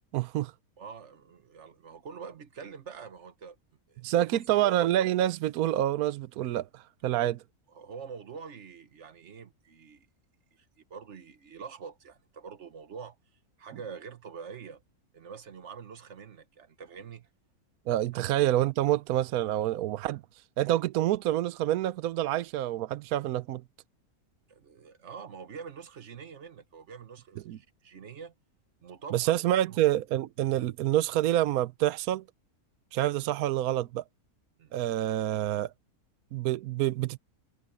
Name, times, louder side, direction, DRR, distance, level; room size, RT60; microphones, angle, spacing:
voice 1, 0.1-0.5 4.0-7.3 17.9-20.2 20.6-23.6 27.5-27.6 29.1-32.2 32.9-34.0 34.7-35.7 36.3-37.2, right 13 dB, 75° right, 1.1 m, -27 dB
voice 2, 0.8-3.6 3.9-4.6 7.1-7.3 7.7-10.1 10.5-13.2 13.6-14.8 15.1-17.3 24.5-28.3 28.8-29.8 34.6-34.7, right 6 dB, 50° right, 1.4 m, -45 dB
omnidirectional pair, 1.6 m